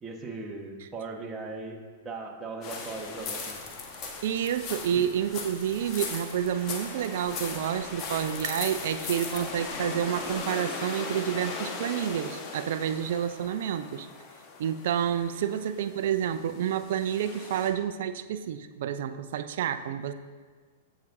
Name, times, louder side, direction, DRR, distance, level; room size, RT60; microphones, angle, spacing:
voice 1, 0.0-3.6 5.0-5.1, right 3 dB, 20° right, 0 dB, 1.3 m, -38 dB
sound 1, 2.6-17.7, left 4 dB, 35° left, 1.4 m, -38 dB
sound 2, 2.7-10.4, equal, 5° left, 2.2 m, -52 dB
voice 2, 4.2-14.1 14.6-20.1, right 9 dB, 60° right, 11 dB, 0.5 m, -29 dB
15.5 x 6.0 x 2.7 m, 1.5 s
figure-of-eight pair, 100°, 0 cm